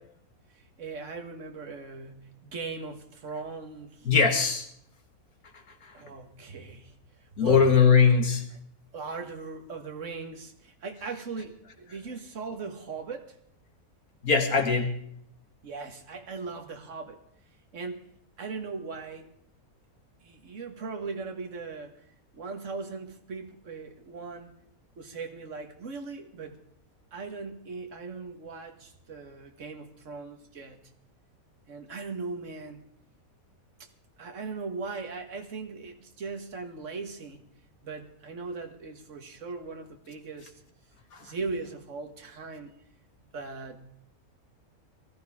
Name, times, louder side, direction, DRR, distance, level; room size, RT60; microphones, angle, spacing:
voice 1, 0.5-4.1 5.9-7.6 8.9-13.4 15.6-17.2 17.7-18.1 18.4-19.3 20.2-22.1 22.3-24.6 25.0-26.6 27.1-30.9 31.7-32.9 33.8-33.9 34.2-37.5 37.8-40.6 41.2-42.7 43.3-43.9, right 4 dB, 60° right, 1.9 m, -39 dB
voice 2, 4.1-4.7 5.8-5.9 7.4-8.4 14.2-15.0 41.1-41.3, left 5 dB, 80° left, 2.2 m, -21 dB
19.5 x 14.5 x 3.6 m
omnidirectional pair, 1.5 m